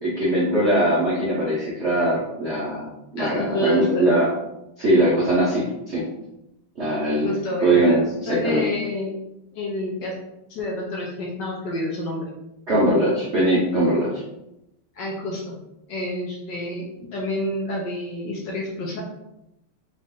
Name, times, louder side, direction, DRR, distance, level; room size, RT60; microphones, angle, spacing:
voice 1, 0.0-4.3 4.8-6.0 6.8-7.3 7.6-8.6 12.7-14.2, right 1 dB, 60° right, -7 dB, 0.7 m, -21 dB
voice 2, 3.2-4.1 7.2-8.0 8.3-9.1 9.5-10.1 10.5-12.3 15.0-15.6 15.9-16.8 17.1-19.0, left 1 dB, 65° left, -2 dB, 1.2 m, -28 dB
4.0 x 2.6 x 3.6 m, 0.87 s
omnidirectional pair, 2.4 m